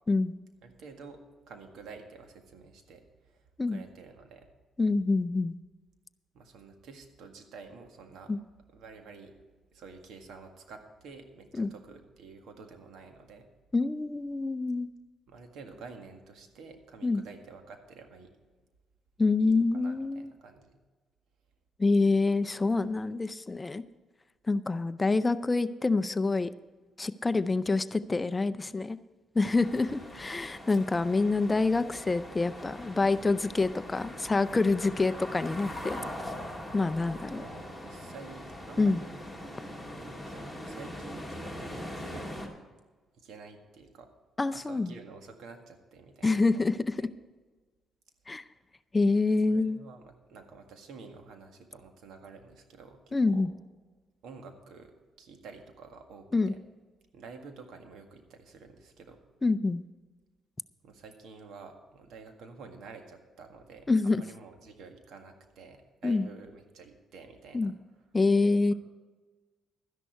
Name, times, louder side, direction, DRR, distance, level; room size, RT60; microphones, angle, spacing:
voice 1, 0.6-1.2 1.5-4.5 6.3-8.3 8.7-9.3 9.7-13.5 15.3-18.3 19.4-20.8 22.9-23.0 29.8-30.2 33.2-33.4 37.4-39.1 40.0-42.5 43.1-44.1 44.5-47.1 49.5-53.5 54.2-56.6 57.1-59.2 60.8-67.7, right 4 dB, 80° right, 5 dB, 1.8 m, -49 dB
voice 2, 4.8-5.6 8.3-8.4 11.6-11.7 13.7-14.9 17.0-17.2 19.2-20.3 21.8-23.8 24.5-26.5 27.0-29.0 29.3-36.0 36.2-36.3 36.7-37.4 38.8-39.0 44.4-44.9 46.2-47.1 48.3-48.4 48.9-49.8 53.1-53.5 56.3-56.5 59.4-59.8 63.9-64.2 66.0-66.3 67.5-67.7 68.1-68.7, left 3 dB, 20° left, 13 dB, 0.5 m, -26 dB
sound 1, 29.5-42.5, left 1 dB, 5° right, 2.4 m, -42 dB
12.5 x 11.0 x 4.6 m, 1.3 s
cardioid pair, 90°, 0 cm